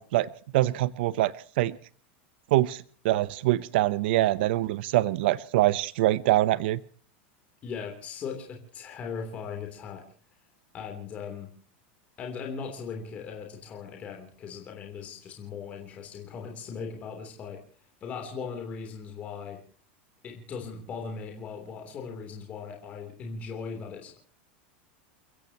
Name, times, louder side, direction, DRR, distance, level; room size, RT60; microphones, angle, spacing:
voice 1, 0.0-1.7 2.5-6.8, right 16 dB, 60° right, 17 dB, 0.7 m, -24 dB
voice 2, 7.6-10.0 10.7-11.5 12.2-17.6 18.0-19.6 20.2-24.2, left 5 dB, 20° left, 2 dB, 3.2 m, -38 dB
30.0 x 15.5 x 2.9 m, 0.44 s
supercardioid pair, 175°, 6 cm